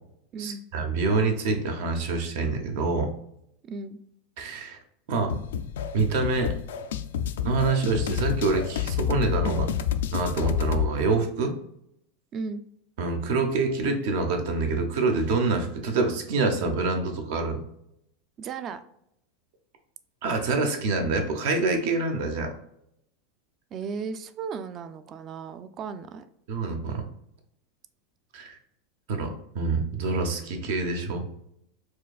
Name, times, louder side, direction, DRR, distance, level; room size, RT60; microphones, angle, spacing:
voice 1, 0.4-3.1 4.4-4.8 5.1-5.3 5.9-6.5 7.4-9.7 10.1-11.5 13.0-17.7 20.2-22.5 26.5-27.1 28.3-28.6 29.1-31.3, right 3 dB, 70° right, 4 dB, 0.7 m, -26 dB
voice 2, 3.6-4.0 12.3-12.6 18.4-18.8 23.7-26.2, right 5 dB, 35° right, 11 dB, 0.3 m, -35 dB
sound 1, 5.3-10.9, left 9 dB, 90° left, 0.3 m, -29 dB
4.5 x 2.5 x 2.3 m, 0.76 s
supercardioid pair, 135°, 0 cm